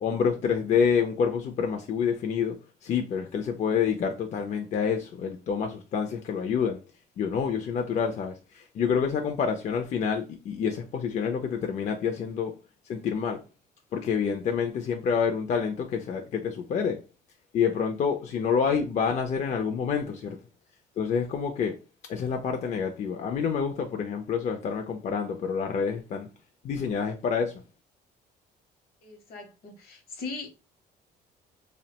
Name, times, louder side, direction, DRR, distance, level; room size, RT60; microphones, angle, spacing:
voice 1, 0.0-6.8 7.2-12.6 12.9-13.4 13.9-17.0 17.5-20.4 21.0-21.8 22.1-26.3 26.6-27.5, left 6 dB, 45° left, 0.4 m, -28 dB
voice 2, 29.0-30.5, left 4 dB, 65° left, 0.8 m, -39 dB
2.6 x 2.1 x 2.8 m
cardioid pair, 110°, 17 cm